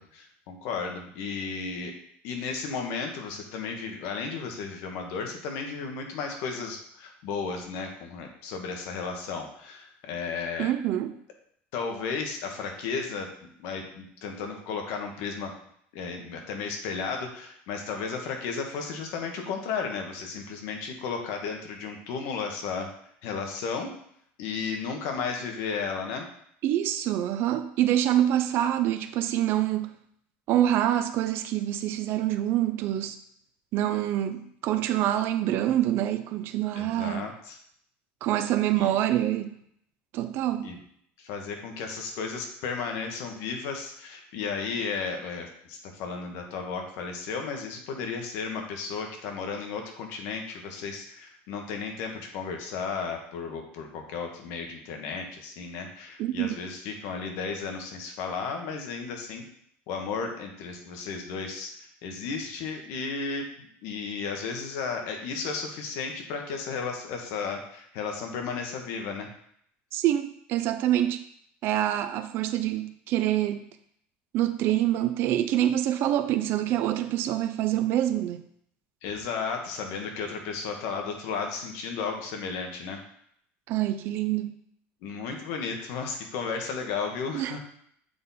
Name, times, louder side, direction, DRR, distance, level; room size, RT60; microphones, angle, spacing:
voice 1, 0.0-1.9 2.2-10.7 11.7-13.3 13.6-15.5 15.9-22.9 23.2-23.9 24.4-26.3 36.7-37.6 38.8-38.9 40.6-40.8 41.2-59.4 59.9-61.7 62.0-69.3 79.0-83.0 85.0-87.6, left 5 dB, 65° left, 3 dB, 1.3 m, -34 dB
voice 2, 10.6-11.2 26.6-29.9 30.5-33.2 33.7-37.3 38.2-39.6 40.1-40.7 56.2-56.6 69.9-71.2 71.6-73.6 74.3-78.4 83.7-84.6 87.3-87.6, right 12 dB, 45° right, 8 dB, 0.5 m, -26 dB
6.8 x 3.9 x 4.1 m, 0.68 s
cardioid pair, 155°, 5 cm